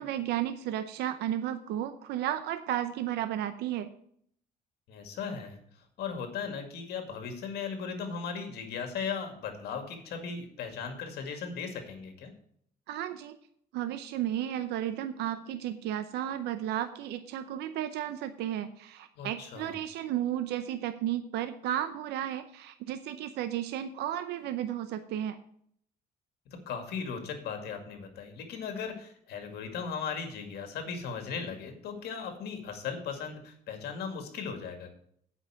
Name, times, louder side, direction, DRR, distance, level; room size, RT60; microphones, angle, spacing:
voice 1, 0.0-3.9 12.9-13.4 13.7-25.4, right 11 dB, 80° right, 10 dB, 0.7 m, -33 dB
voice 2, 4.9-5.6 6.0-12.3 19.2-19.7 26.5-34.9, left 6 dB, 75° left, 5 dB, 2.1 m, -37 dB
8.3 x 5.5 x 7.6 m, 0.65 s
cardioid pair, 110°, 17 cm